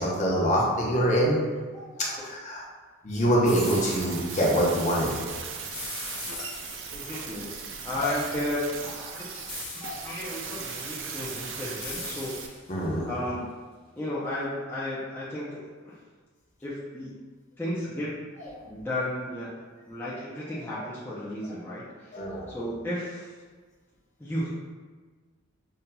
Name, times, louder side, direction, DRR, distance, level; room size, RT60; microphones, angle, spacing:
voice 1, 0.0-1.4 1.7-2.6 3.0-5.1 9.8-10.0 12.7-13.1 22.1-22.5, equal, 40° left, -4 dB, 0.8 m, -25 dB
sound 1, 3.4-4.2 5.7-7.2 9.5-10.3 11.8-12.8, left 4 dB, 65° left, 1.1 m, -40 dB
sound 2, 3.6-12.5, right 5 dB, 65° right, 0.5 m, -38 dB
voice 2, 6.9-7.5 7.8-9.2 9.7-12.5 13.0-13.4 14.0-15.6 15.8-16.0 16.6-17.2 17.6-18.1 18.6-19.5 19.9-22.2 22.5-23.3 24.2-24.5, left 1 dB, 10° left, -9 dB, 0.5 m, -33 dB
5.5 x 2.6 x 2.2 m, 1.4 s
head